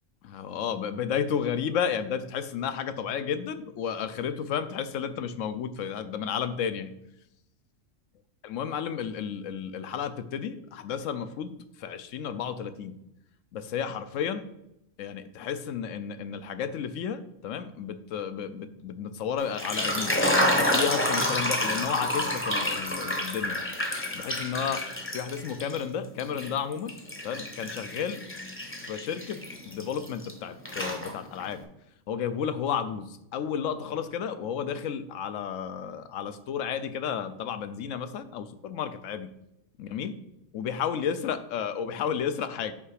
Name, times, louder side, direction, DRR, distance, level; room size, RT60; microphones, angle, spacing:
voice 1, 0.2-6.9 8.4-11.5 11.8-12.9 13.5-14.5 15.0-20.2 20.6-23.6 24.1-24.9 25.1-26.9 27.2-28.2 28.9-29.4 29.7-31.6 32.1-39.3 39.8-40.1 40.5-42.7, left 8 dB, 75° left, 11 dB, 0.9 m, -32 dB
sound 1, 19.4-25.8 26.2-30.3 30.6-31.5, left 1 dB, 10° left, 0.7 m, -29 dB
5.8 x 5.5 x 4.8 m, 0.83 s
omnidirectional pair, 1.4 m